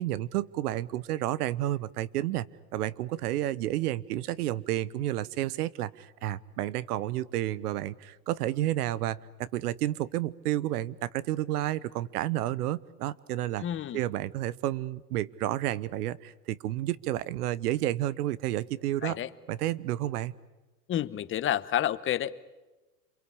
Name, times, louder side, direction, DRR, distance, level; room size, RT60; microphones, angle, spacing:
voice 1, 0.0-2.5 2.7-13.6 13.9-19.2 19.5-20.3, right 14 dB, 70° right, 19 dB, 1.1 m, -31 dB
voice 2, 13.6-14.0 19.0-19.3 20.9-22.5, left 11 dB, 25° left, 14 dB, 1.0 m, -30 dB
27.5 x 23.5 x 8.6 m, 1.1 s
hypercardioid pair, 115°, 48 cm